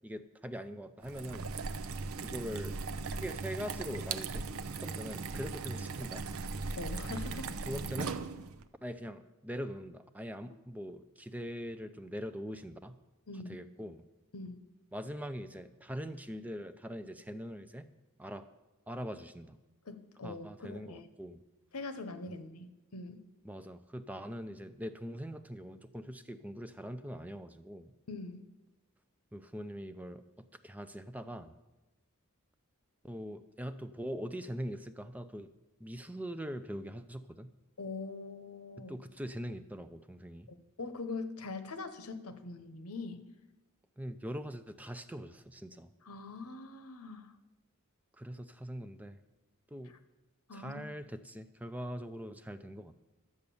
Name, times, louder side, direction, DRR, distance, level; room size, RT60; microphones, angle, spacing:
voice 1, 0.0-1.5 2.2-2.8 3.1-4.5 4.8-6.3 7.6-8.2 8.8-12.9 13.3-14.1 14.9-17.9 18.2-18.5 18.9-19.6 20.2-21.4 22.3-22.4 23.4-27.9 29.3-30.2 30.6-31.5 33.0-35.5 35.8-37.5 38.9-40.5 44.0-45.9 48.1-49.2 49.7-49.9 50.5-53.0, equal, 5° right, 10 dB, 0.5 m, -42 dB
sound 1, 1.0-8.6, right 4 dB, 75° right, 0.6 m, -38 dB
voice 2, 6.8-7.5 13.3-13.6 14.3-14.6 19.9-21.0 21.7-23.2 28.1-28.4 37.8-38.9 40.5-43.2 46.1-47.3 50.5-50.8, left 3 dB, 85° left, 10 dB, 1.0 m, -42 dB
12.0 x 8.1 x 7.0 m, 1.1 s
head